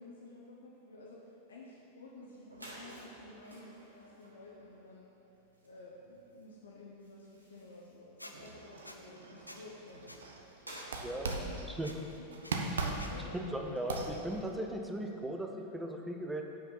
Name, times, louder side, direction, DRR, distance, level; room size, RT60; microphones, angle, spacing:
voice 1, 0.0-5.1 5.6-10.2 10.9-12.3 13.1-13.3, left 2 dB, 65° left, -3 dB, 0.9 m, -52 dB
sound 1, 2.1-2.2 2.4-13.2, right 1 dB, 80° right, 1.4 m, -55 dB
Squeak, 8.2-8.3 8.8-9.0 9.5-9.6 10.1-10.2 10.7-10.8 11.3-11.4 11.8-12.0 12.4-12.5 13.0-13.1, left 1 dB, 85° left, 0.5 m, -49 dB
sound 2, 8.3-10.4 10.8-11.9 12.3-14.5, right 3 dB, 65° right, 0.7 m, -39 dB
voice 2, 13.3-16.4, right 1 dB, 5° right, 2 dB, 0.7 m, -37 dB
7.1 x 5.6 x 5.7 m, 2.8 s
figure-of-eight pair, 90°, 0 cm